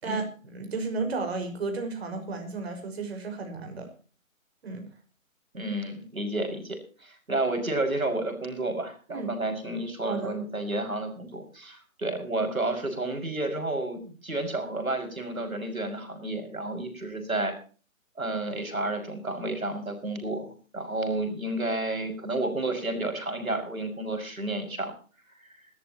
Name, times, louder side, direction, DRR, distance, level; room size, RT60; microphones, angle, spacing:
voice 1, 0.0-3.9 4.6-4.9 9.1-9.3 10.1-10.4, right 4 dB, 50° right, 5 dB, 5.2 m, -33 dB
voice 2, 5.5-17.5 18.2-24.9 25.4-25.5, right 2 dB, 85° right, 5 dB, 6.1 m, -31 dB
22.5 x 13.5 x 2.9 m, 0.40 s
figure-of-eight pair, 145°, 41 cm